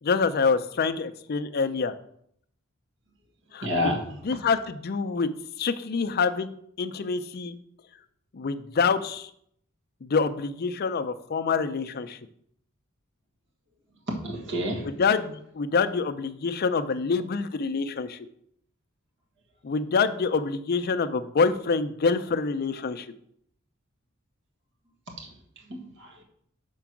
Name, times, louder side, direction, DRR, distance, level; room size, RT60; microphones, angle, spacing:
voice 1, 0.0-1.9 3.5-4.0 4.2-5.3 5.6-6.5 6.8-7.5 8.3-9.3 10.0-12.2 14.8-18.3 19.6-23.1, left 5 dB, 45° left, 11 dB, 0.5 m, -26 dB
voice 2, 3.6-4.0 14.1-14.9 25.7-26.2, left 1 dB, 60° right, 0 dB, 1.5 m, -29 dB
6.0 x 4.6 x 5.9 m, 0.69 s
head